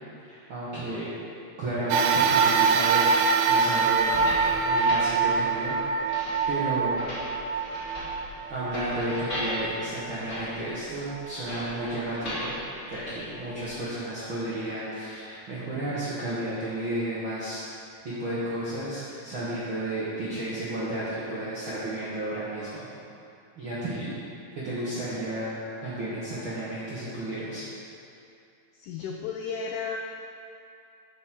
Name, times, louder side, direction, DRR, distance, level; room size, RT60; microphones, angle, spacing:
voice 1, 0.2-1.1 1.6-4.1 4.5-5.8 6.1-7.0 8.5-12.6 12.9-17.6 18.2-22.8 23.6-24.2 24.6-27.6, right 1 dB, 60° right, -10 dB, 1.3 m, -32 dB
sound 1, 1.9-10.5 11.1-11.2 12.3-12.4, right 5 dB, 85° right, 2.5 m, -25 dB
sound 2, 4.0-13.6, equal, 35° left, 2.2 m, -38 dB
voice 2, 28.8-30.0, left 6 dB, 85° left, 2 dB, 1.7 m, -33 dB
7.9 x 6.3 x 5.9 m, 2.6 s
omnidirectional pair, 4.2 m